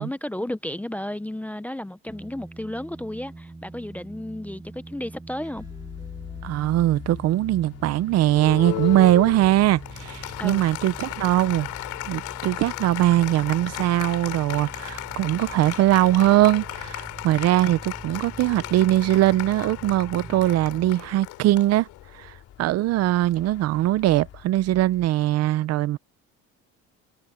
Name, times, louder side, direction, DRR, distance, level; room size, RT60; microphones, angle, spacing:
voice 1, 0.0-5.7 10.4-10.6, left 1 dB, 5° left, 0.5 m, -33 dB
sound 1, 2.1-21.0, right 2 dB, 10° right, 6.0 m, -43 dB
sound 2, 5.5-25.1, left 11 dB, 55° left, 3.0 m, -46 dB
voice 2, 6.4-11.7 12.1-21.9 22.1-26.0, right 14 dB, 60° right, 0.7 m, -21 dB
Applause, 8.3-22.3, left 18 dB, 90° left, 2.9 m, -35 dB
cardioid pair, 140°, 29 cm